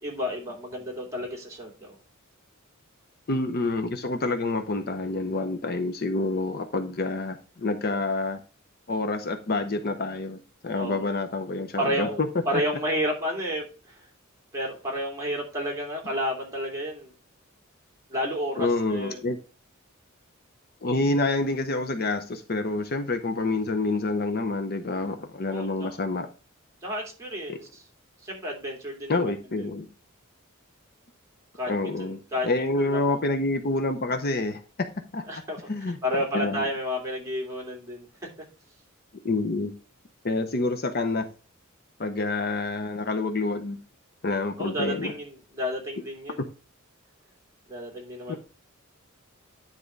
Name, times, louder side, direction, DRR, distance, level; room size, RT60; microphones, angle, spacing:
voice 1, 0.0-2.0 10.7-11.1 11.8-14.0 14.5-17.1 18.1-19.2 25.5-26.0 26.8-27.7 28.2-29.7 31.5-33.2 35.3-35.6 36.0-38.1 44.6-46.4 47.7-48.4, equal, 15° right, 2.7 m, -31 dB
voice 2, 3.3-8.4 8.9-12.3 12.5-12.6 18.6-19.4 20.8-26.3 27.5-27.6 29.1-29.9 31.7-34.9 35.1-35.4 35.7-36.0 36.3-36.7 39.2-39.7 40.2-41.3 42.0-43.8 44.2-45.1 48.3-48.4, left 2 dB, 45° left, 0.7 m, -27 dB
10.0 x 3.7 x 5.2 m
head